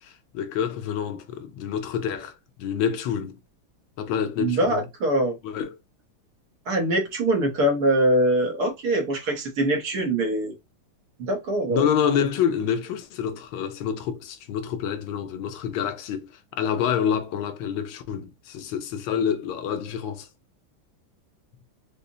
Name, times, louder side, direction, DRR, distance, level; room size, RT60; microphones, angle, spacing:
voice 1, 0.0-2.3 2.6-3.4 4.0-4.9 5.4-5.8 11.7-20.3, left 8 dB, 85° left, 1.4 m, -27 dB
voice 2, 4.4-5.4 6.7-10.5 11.2-11.8, right 1 dB, 60° right, 1.3 m, -23 dB
5.1 x 2.0 x 2.7 m
omnidirectional pair, 2.1 m